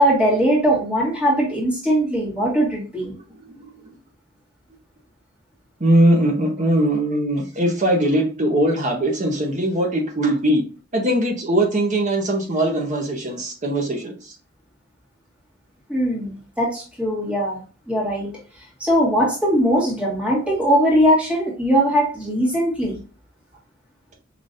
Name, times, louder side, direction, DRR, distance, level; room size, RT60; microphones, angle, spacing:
voice 1, 0.0-3.1 15.9-18.3 18.8-23.0, equal, 5° right, -4 dB, 1.6 m, -20 dB
voice 2, 3.5-3.9 5.8-10.6 10.9-14.1, right 1 dB, 35° right, 1 dB, 1.0 m, -20 dB
5.0 x 3.0 x 2.6 m, 0.36 s
head